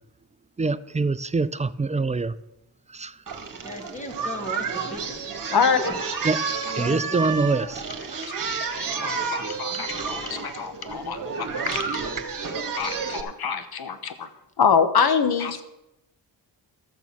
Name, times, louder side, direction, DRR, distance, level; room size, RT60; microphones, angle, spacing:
voice 1, 0.6-2.3 3.0-3.1 6.3-6.4 6.8-7.7, right 3 dB, 15° right, 0.4 m, -24 dB
Singing, 3.3-13.2, right 5 dB, 45° right, 1.7 m, -30 dB
voice 2, 3.6-5.2 5.5-6.0 6.7-7.4, left 1 dB, 15° left, 1.9 m, -36 dB
voice 3, 5.5-5.9 6.6-6.8 8.2-8.3 9.0-12.0 12.7-14.3 14.6-15.6, left 6 dB, 55° left, 1.2 m, -25 dB
13.5 x 7.0 x 5.9 m
cardioid pair, 75°, 44 cm